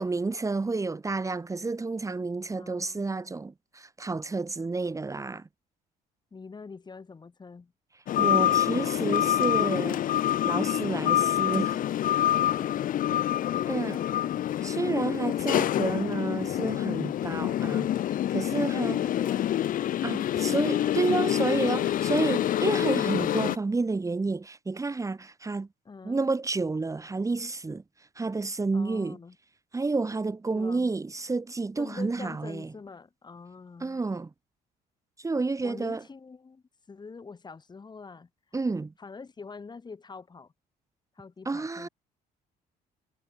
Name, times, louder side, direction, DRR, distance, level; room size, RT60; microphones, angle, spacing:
voice 1, 0.0-5.5 8.2-10.0 10.4-11.8 13.7-14.0 14.6-19.0 20.0-25.7 26.0-27.8 28.2-29.2 29.7-32.7 33.8-34.3 35.2-36.0 38.5-38.9 41.5-41.9, right 3 dB, 20° right, 2.3 m, -30 dB
voice 2, 2.6-3.1 6.3-7.7 12.3-14.8 18.5-20.0 20.5-21.5 25.8-26.3 28.7-29.4 30.5-30.9 31.8-34.0 35.6-38.3 39.0-40.5 41.1-41.9, left 4 dB, 25° left, 3.5 m, -45 dB
sound 1, 8.1-23.6, left 12 dB, 55° left, 0.8 m, -26 dB
cardioid pair, 110°, 17 cm